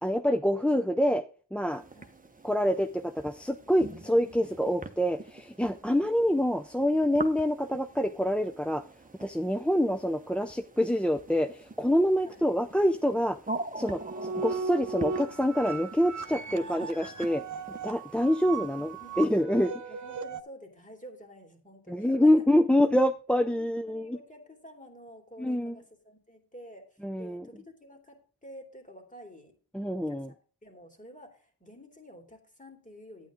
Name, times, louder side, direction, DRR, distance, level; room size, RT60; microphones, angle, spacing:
voice 1, 0.0-1.2 1.5-1.8 2.4-8.8 9.2-13.4 13.8-14.0 14.4-17.4 17.8-19.7 21.9-24.2 25.4-25.8 27.0-27.4 29.7-30.3, equal, 5° left, 9 dB, 0.5 m, -26 dB
sound 1, 1.7-19.4, right 2 dB, 20° right, 1.0 m, -45 dB
voice 2, 1.9-2.3 4.0-4.8 5.8-6.5 12.2-12.5 18.4-19.2 19.5-22.7 23.4-29.5 30.0-30.4 30.6-33.3, equal, 20° left, 3 dB, 2.9 m, -51 dB
sound 2, 13.9-20.4, right 4 dB, 45° right, 1.1 m, -37 dB
9.5 x 8.9 x 3.8 m, 0.39 s
cardioid pair, 55°, 41 cm